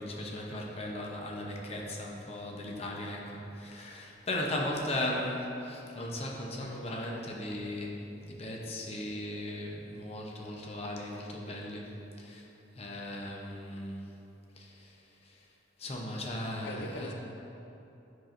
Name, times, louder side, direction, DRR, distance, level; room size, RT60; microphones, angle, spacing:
voice 1, 0.0-12.5 12.8-14.1 14.6-15.0 15.2-15.4 15.8-17.1, left 1 dB, 35° left, -1 dB, 0.8 m, -37 dB
voice 2, 16.6-17.1, left 2 dB, 80° left, 2 dB, 0.5 m, -41 dB
9.4 x 5.9 x 2.6 m, 2.9 s
head